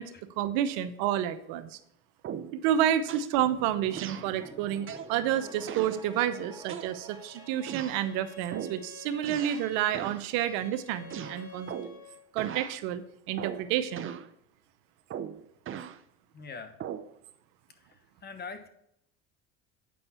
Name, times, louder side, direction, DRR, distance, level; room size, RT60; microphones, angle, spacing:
voice 1, 0.0-1.8 2.6-11.7 12.3-13.0 13.3-14.1, right 11 dB, 70° right, 12 dB, 0.8 m, -29 dB
sound 1, 2.2-2.6 3.1-3.3 4.0-4.3 4.9-5.1 5.7-6.0 6.7-7.2 7.7-8.0 8.5-8.8 9.2-9.7 9.9-10.3 11.1-12.0 12.4-12.8 13.4-13.7 14.0-14.3 15.1-16.0 16.8-17.1, right 9 dB, 35° right, 0.6 m, -39 dB
sound 2, 3.4-8.8, right 2 dB, 10° right, 1.4 m, -49 dB
Bowed string instrument, 7.1-12.3, left 7 dB, 50° left, 1.3 m, -51 dB
voice 2, 16.3-16.8 17.7-18.7, left 5 dB, 25° left, 9 dB, 1.1 m, -44 dB
8.6 x 5.4 x 4.2 m, 0.75 s
supercardioid pair, 95°, 36 cm